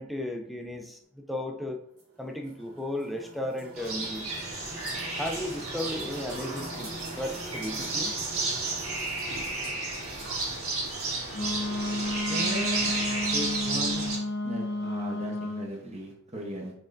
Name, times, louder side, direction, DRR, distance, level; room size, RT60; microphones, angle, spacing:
voice 1, 0.0-1.8 2.2-4.3 5.2-8.1, left 1 dB, ahead, 2 dB, 0.4 m, -35 dB
sound 1, 2.0-11.6, right 2 dB, 90° right, 1.4 m, -44 dB
sound 2, 3.8-14.2, right 3 dB, 70° right, 1.8 m, -32 dB
Wind instrument woodwind instrument, 11.3-15.7, left 1 dB, 50° left, 0.5 m, -32 dB
voice 2, 12.2-12.9 13.3-14.2 14.4-16.7, right 1 dB, 30° right, 0 dB, 0.8 m, -37 dB
5.9 x 3.3 x 2.6 m, 0.73 s
head